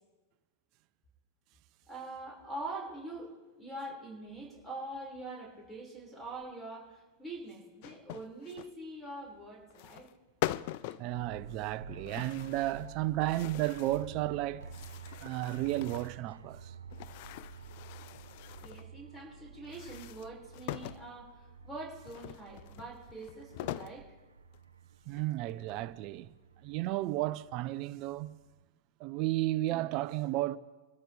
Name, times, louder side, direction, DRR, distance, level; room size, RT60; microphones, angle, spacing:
voice 1, 1.9-3.3 3.6-10.1 18.6-24.0, right 2 dB, 10° left, 5.5 m, -44 dB
sound 1, 7.8-8.7 9.7-10.1 10.4-11.1 12.1-12.9 13.2-14.1 14.6-16.2 16.9-18.9 19.6-21.1 22.1-24.0 24.5-24.6 25.1-25.9, left 15 dB, 55° left, 0.5 m, -42 dB
voice 2, 11.0-14.7 15.2-16.8 25.1-26.3 26.6-28.3 29.0-30.6, right 17 dB, 45° right, 0.7 m, -33 dB
sound 2, 11.1-28.6, right 3 dB, 90° right, 0.9 m, -51 dB
24.5 x 13.5 x 3.5 m
hypercardioid pair, 105°, 0 cm